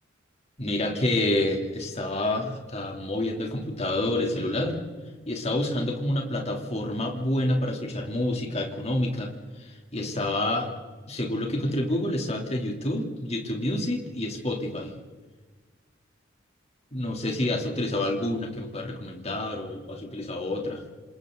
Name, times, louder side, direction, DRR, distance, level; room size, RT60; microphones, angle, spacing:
voice 1, 0.6-4.8 5.3-9.3 9.6-10.7 11.1-14.9 16.9-20.8, left 1 dB, 35° left, 1 dB, 3.4 m, -28 dB
28.0 x 27.0 x 4.0 m, 1.4 s
head